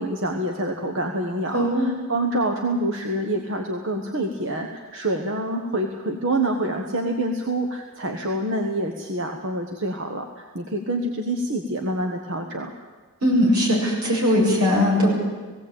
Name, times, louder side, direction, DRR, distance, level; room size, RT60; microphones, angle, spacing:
voice 1, 0.0-12.7, right 1 dB, 60° right, 3 dB, 1.4 m, -27 dB
voice 2, 1.5-1.9 13.2-15.1, left 1 dB, 85° right, -2 dB, 7.0 m, -19 dB
19.0 x 17.0 x 8.8 m, 1.4 s
head